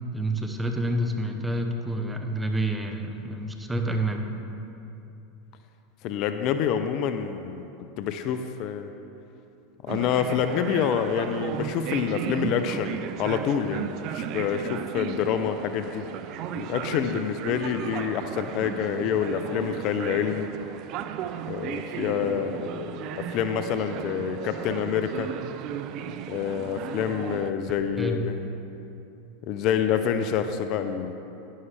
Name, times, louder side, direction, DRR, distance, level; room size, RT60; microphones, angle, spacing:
voice 1, 0.1-4.3 28.0-28.3, right 1 dB, 10° right, 3 dB, 1.1 m, -28 dB
voice 2, 6.0-7.7 8.0-8.9 9.8-16.1 16.5-20.5 21.5-25.3 26.3-28.4 29.5-31.1, left 8 dB, 55° left, 8 dB, 0.5 m, -27 dB
sound 1, 9.9-27.5, right 9 dB, 55° right, 0.4 m, -35 dB
11.0 x 11.0 x 3.4 m, 2.9 s
hypercardioid pair, 95°, 0 cm